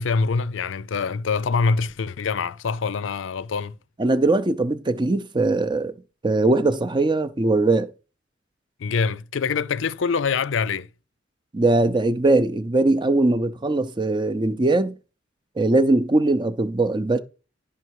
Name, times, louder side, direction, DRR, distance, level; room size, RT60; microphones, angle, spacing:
voice 1, 0.0-3.7 8.8-10.9, left 5 dB, 75° left, 0.5 m, -24 dB
voice 2, 4.0-5.9 6.2-7.9 11.5-14.9 15.6-17.2, right 2 dB, 25° right, 0.6 m, -20 dB
11.0 x 5.7 x 4.7 m
head